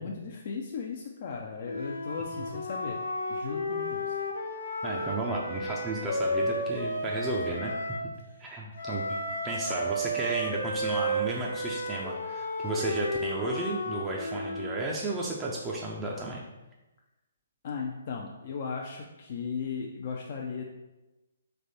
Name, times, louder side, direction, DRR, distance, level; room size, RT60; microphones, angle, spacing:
voice 1, 0.0-3.0 3.3-4.2 17.6-20.6, left 5 dB, 50° left, -1 dB, 0.4 m, -36 dB
Wind instrument woodwind instrument, 1.6-8.0 8.7-14.8, equal, 70° left, 0.9 m, -33 dB
voice 2, 4.8-7.7 8.4-9.1 9.4-16.4, right 2 dB, 15° right, -3 dB, 0.5 m, -33 dB
3.3 x 3.3 x 4.1 m, 1.1 s
hypercardioid pair, 140°, 0 cm